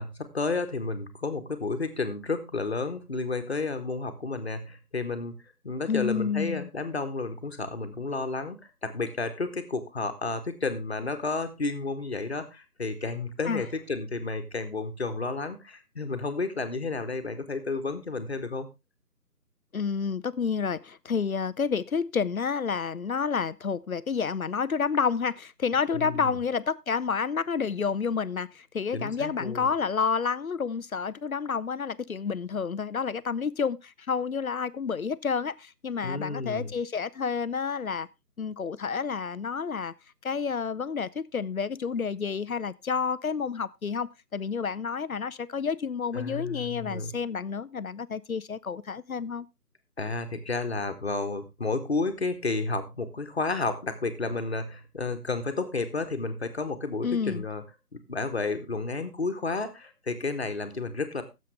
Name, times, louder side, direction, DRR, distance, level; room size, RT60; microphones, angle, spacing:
voice 1, 0.0-5.3 5.6-18.7 25.9-26.4 28.9-29.7 36.0-36.7 46.1-47.1 50.0-57.6 57.9-61.2, left 3 dB, 40° left, 1.5 m, -31 dB
voice 2, 5.9-6.7 13.5-13.6 19.7-38.1 38.4-39.9 40.2-49.5 57.0-57.4, left 6 dB, 60° left, 0.6 m, -29 dB
16.5 x 7.6 x 3.3 m
figure-of-eight pair, 160°, 47 cm